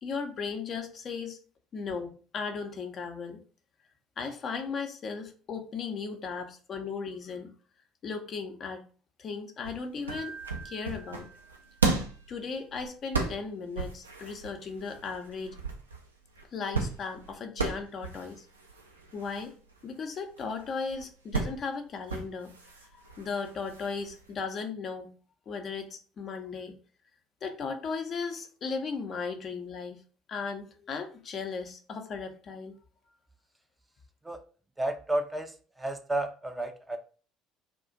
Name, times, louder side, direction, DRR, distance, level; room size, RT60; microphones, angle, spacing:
voice 1, 0.0-1.4 1.7-3.4 4.2-7.5 8.0-8.8 9.2-10.4 10.6-11.3 12.3-15.6 16.5-18.5 19.1-19.5 19.8-22.5 22.8-25.1 25.5-26.8 27.4-30.0 30.3-32.8, left 5 dB, 45° left, 4 dB, 0.6 m, -36 dB
sound 1, 9.6-24.3, right 4 dB, 85° right, 0.4 m, -36 dB
Piano, 10.1-12.2, right 5 dB, 90° left, 0.6 m, -46 dB
voice 2, 34.8-37.0, right 1 dB, 15° right, 6 dB, 0.4 m, -32 dB
2.4 x 2.2 x 3.8 m, 0.39 s
figure-of-eight pair, 55°, 0 cm